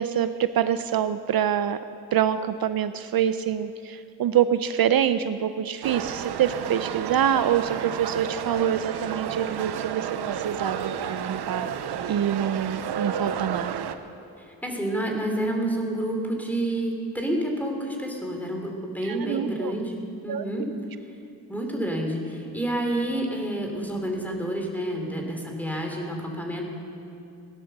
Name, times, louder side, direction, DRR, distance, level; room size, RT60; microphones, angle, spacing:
voice 1, 0.0-1.8 2.1-13.7 19.0-19.7 20.3-20.4, right 9 dB, 65° right, 11 dB, 0.6 m, -26 dB
sound 1, 5.8-13.9, right 8 dB, 90° right, 0.8 m, -31 dB
voice 2, 14.5-20.0 20.2-20.7 21.5-26.6, right 1 dB, 5° left, 1 dB, 2.9 m, -29 dB
17.0 x 11.0 x 6.7 m, 2.9 s
cardioid pair, 80°, 39 cm